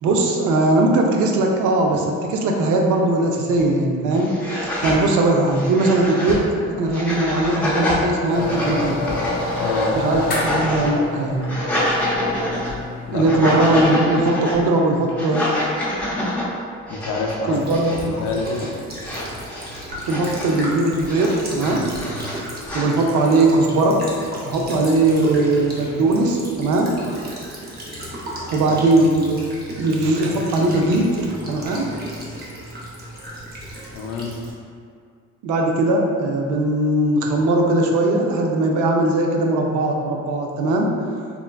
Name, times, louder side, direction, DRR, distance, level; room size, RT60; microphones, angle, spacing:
voice 1, 0.0-4.3 4.6-9.0 9.9-11.5 13.1-15.5 17.5-18.2 20.1-21.8 22.7-24.0 24.4-26.9 28.5-29.5 29.8-31.9 35.4-40.9, right 2 dB, 80° right, 1 dB, 0.5 m, -19 dB
sound 1, 3.6-3.7 4.1-5.0 5.5-6.4 6.9-8.0 8.4-10.9 11.3-12.8 13.1-14.6 15.1-16.4 16.9-17.4 17.7-18.0 18.3-18.7 19.0-20.6 21.0-22.9, left 1 dB, 5° left, 0.6 m, -26 dB
sound 2, 8.3-13.9, left 2 dB, 30° left, 0.8 m, -29 dB
voice 2, 9.6-10.0 13.1-13.3 16.9-17.6 18.0-18.7 28.5-28.8 33.9-34.3, left 3 dB, 80° left, 1 dB, 0.5 m, -27 dB
Child speech kid speaking / Bird vocalization bird call bird song / Stream, 17.5-34.5, right 1 dB, 30° right, 0.7 m, -35 dB
3.6 x 2.2 x 2.2 m, 2.2 s
cardioid pair, 90°, 30 cm